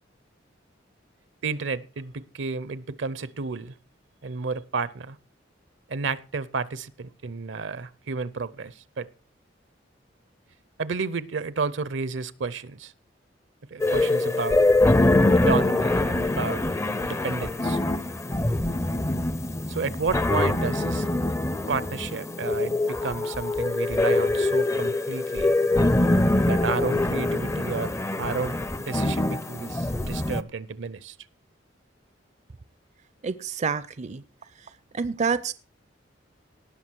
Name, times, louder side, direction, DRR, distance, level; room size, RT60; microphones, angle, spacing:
voice 1, 1.4-3.7 4.2-5.2 5.9-9.1 10.8-12.9 13.7-14.6 15.5-16.6 17.0-17.8 19.7-21.1 21.7-25.5 26.5-31.2, right 4 dB, 75° right, 0.7 m, -31 dB
sound 1, 13.8-30.4, left 2 dB, 15° left, 0.5 m, -24 dB
voice 2, 33.2-34.2 34.9-35.5, right 5 dB, 40° right, 0.5 m, -27 dB
18.5 x 6.3 x 4.6 m
head